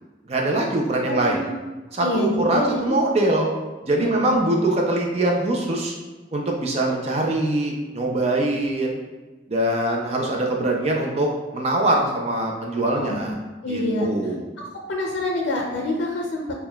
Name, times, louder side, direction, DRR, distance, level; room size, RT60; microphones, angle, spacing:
voice 1, 0.3-1.4 1.9-3.5 3.9-5.9 6.3-9.0 9.5-13.4 13.7-14.4, right 1 dB, 35° right, 0 dB, 0.4 m, -23 dB
voice 2, 1.1-1.5 2.0-2.9 4.0-4.5 13.0-13.4 13.6-14.1 14.9-16.6, left 1 dB, 75° left, -1 dB, 0.5 m, -26 dB
6.0 x 2.2 x 2.2 m, 1.2 s
head